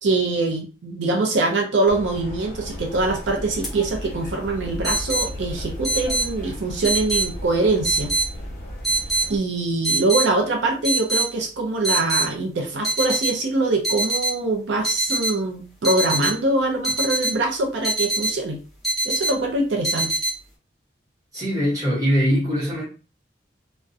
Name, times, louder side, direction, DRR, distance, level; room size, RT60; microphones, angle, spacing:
voice 1, 0.0-8.1 9.3-18.6 19.0-20.1, right 2 dB, 75° right, 0.5 m, -23 dB
sound 1, 1.9-9.4, equal, 55° left, 0.8 m, -35 dB
sound 2, 2.9-3.2 3.6-3.7 4.8-5.3 5.8-6.3 6.8-7.3 7.8-8.3 8.8-9.3 9.8-10.3 10.8-11.3 11.8-12.3 12.8-13.3 13.8-14.3 14.8-15.3 15.8-16.3 16.8-17.3 17.8-18.3 18.8-19.3 19.8-20.3, right 2 dB, ahead, 0.6 m, -23 dB
voice 2, 21.3-22.8, equal, 20° right, 1.0 m, -21 dB
2.3 x 2.1 x 2.5 m
head